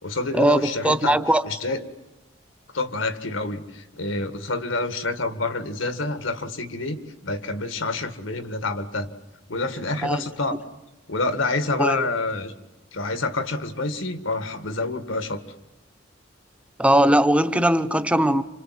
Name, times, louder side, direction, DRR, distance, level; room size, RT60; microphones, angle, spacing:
voice 1, 0.0-1.2 1.5-1.8 2.7-9.1 9.5-10.6 11.1-12.5 12.9-15.4, left 2 dB, 80° left, 1.9 m, -27 dB
voice 2, 0.8-1.4 10.0-10.2 11.8-12.0 16.8-18.4, right 1 dB, 5° right, 0.9 m, -19 dB
29.0 x 27.0 x 7.7 m
head